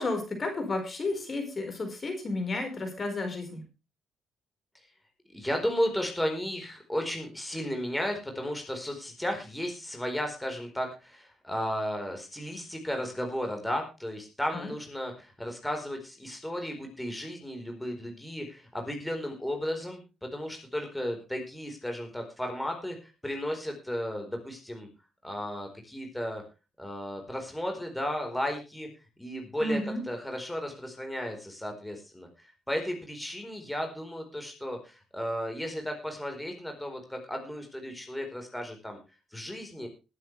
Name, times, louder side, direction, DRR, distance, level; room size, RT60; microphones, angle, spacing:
voice 1, 0.0-3.6 14.5-14.7 29.6-30.0, left 2 dB, 35° left, 5 dB, 4.6 m, -32 dB
voice 2, 5.3-24.9 25.2-26.4 26.8-28.9 29.2-32.3 32.7-39.0 39.3-39.9, equal, 5° left, 3 dB, 4.3 m, -34 dB
20.5 x 9.4 x 3.3 m, 0.29 s
cardioid pair, 90°, 0 cm